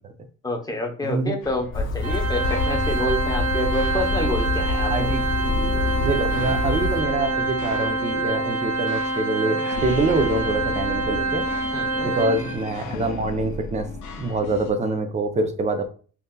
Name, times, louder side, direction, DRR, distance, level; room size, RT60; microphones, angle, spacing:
voice 1, 0.4-5.2 11.7-12.1, left 1 dB, 10° left, 2 dB, 0.8 m, -28 dB
voice 2, 1.0-1.3 4.9-5.2 6.0-11.5 12.0-13.9 14.2-15.9, right 3 dB, 25° right, 6 dB, 0.5 m, -25 dB
sound 1, 1.4-14.7, left 3 dB, 80° left, 0.7 m, -35 dB
sound 2, 1.7-7.0, left 2 dB, 40° left, 0.6 m, -26 dB
Organ, 2.0-12.8, right 2 dB, 55° right, 0.9 m, -26 dB
3.5 x 2.6 x 2.2 m, 0.40 s
cardioid pair, 90°, 30 cm